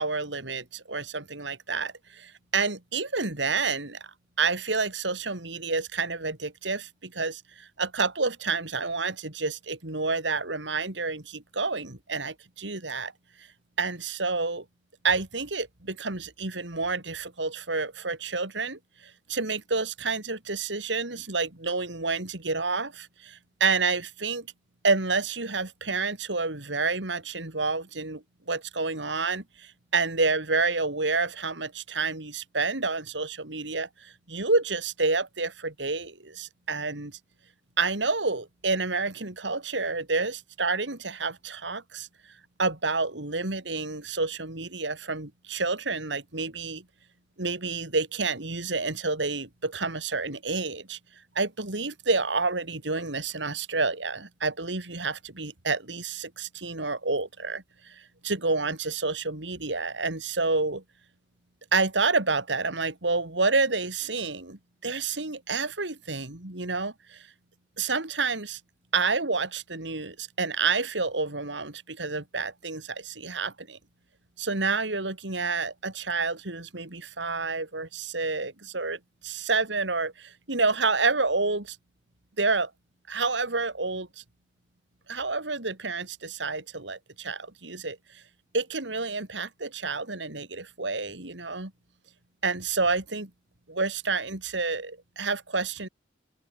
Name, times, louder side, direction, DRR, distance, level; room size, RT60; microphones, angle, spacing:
voice 1, 0.0-4.1 4.4-13.1 13.8-14.6 15.0-24.5 24.8-37.2 37.8-42.1 42.6-46.8 47.4-51.0 51.3-60.8 61.7-67.3 67.8-68.6 68.9-73.8 74.4-81.8 82.4-82.7 83.1-84.2 85.1-88.2 88.5-91.7 92.4-93.3 93.7-95.9, right 4 dB, 80° right, 3.1 m, -29 dB
head